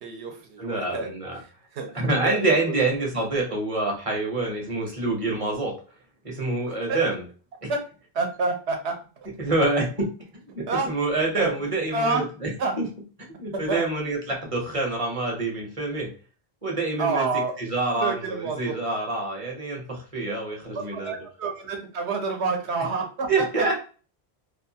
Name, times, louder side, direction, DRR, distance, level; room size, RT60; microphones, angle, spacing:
voice 1, 0.0-1.1 1.7-1.9 2.2-2.8 6.9-7.0 7.7-7.8 8.1-9.0 10.7-10.9 11.3-11.5 11.9-12.2 12.6-12.7 13.7-13.9 17.0-17.5 18.0-18.7 20.7-23.7, right 4 dB, 80° right, 3 dB, 1.0 m, -28 dB
voice 2, 0.6-1.4 1.9-5.8 6.2-7.3 7.6-7.7 9.4-10.1 10.5-12.9 13.4-16.1 16.6-21.1 23.3-23.8, right 2 dB, 35° right, 0 dB, 0.8 m, -27 dB
2.7 x 2.3 x 2.7 m, 0.37 s
omnidirectional pair, 1.1 m